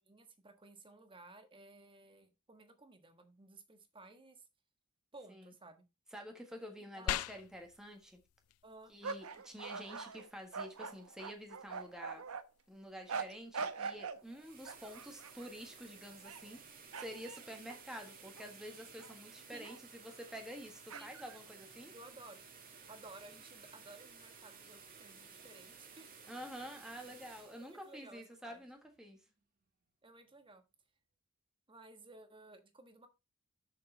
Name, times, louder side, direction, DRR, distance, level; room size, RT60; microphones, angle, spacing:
voice 1, 0.0-4.5 5.1-5.8 6.8-7.2 8.6-8.9 19.5-19.8 20.9-21.1 21.9-22.5 22.9-26.1 27.6-28.6 30.0-30.6 31.7-33.1, right 2 dB, 25° right, 1.3 m, -56 dB
voice 2, 6.1-8.2 8.9-12.2 12.7-21.9 26.3-29.2, equal, 5° right, 1.5 m, -49 dB
sound 1, 7.1-17.1, left 11 dB, 65° left, 0.3 m, -48 dB
sound 2, 9.0-12.4 13.1-14.2 14.7-15.5 16.1-16.6 16.9-18.5 19.0-19.1 19.6-19.8 20.9-21.4, right 5 dB, 70° right, 0.8 m, -43 dB
sound 3, 14.1-29.0, right 5 dB, 40° right, 1.6 m, -56 dB
6.9 x 6.5 x 4.5 m
head